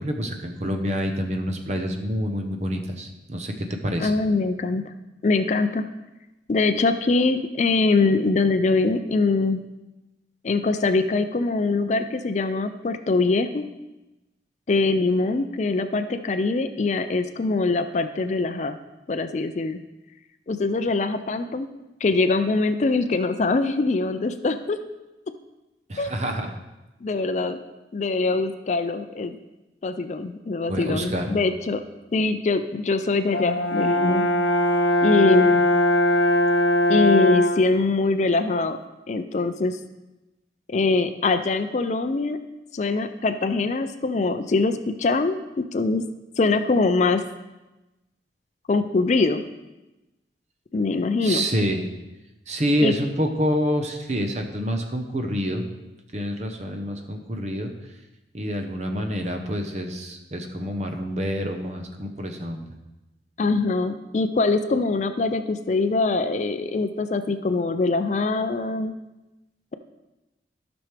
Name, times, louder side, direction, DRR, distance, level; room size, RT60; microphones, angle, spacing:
voice 1, 0.0-4.1 25.9-26.5 30.7-31.3 51.2-51.8 52.5-55.6 56.1-57.7 58.3-62.7, equal, 40° right, 4 dB, 0.9 m, -27 dB
voice 2, 4.0-4.9 5.2-5.8 6.5-9.6 10.4-13.7 14.7-18.8 19.1-19.8 20.5-21.7 22.0-24.8 26.0-26.1 27.0-27.6 27.9-29.4 29.8-31.8 32.1-34.3 35.0-35.7 36.9-38.8 39.1-39.8 40.7-42.4 42.7-46.0 46.4-47.2 48.7-49.4 50.7-51.5 52.8-52.9 63.4-68.9, left 3 dB, 40° left, 9 dB, 0.4 m, -23 dB
Brass instrument, 33.3-37.7, left 1 dB, 80° left, 0.6 m, -20 dB
12.5 x 6.1 x 3.3 m, 1.0 s
head